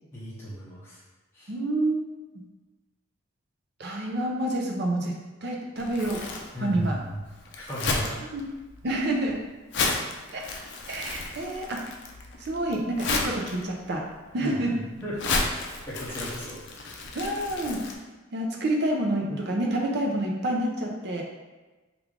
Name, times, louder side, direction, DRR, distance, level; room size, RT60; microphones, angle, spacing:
voice 1, 0.1-1.0 1.3-1.5 6.5-7.2 7.6-8.2 14.4-15.2 15.9-16.6, equal, 10° left, -9 dB, 0.6 m, -35 dB
voice 2, 1.5-2.0 2.3-2.4 3.8-6.2 6.6-7.0 8.3-8.4 8.8-9.4 10.3-10.4 10.9-11.8 12.4-14.1 14.3-14.8 17.1-17.8 18.3-21.2, right 1 dB, 55° right, 0 dB, 0.6 m, -28 dB
Crumpling crinkling, 5.8-17.9, left 3 dB, 60° left, 0.4 m, -33 dB
3.2 x 2.4 x 3.5 m, 1.2 s
head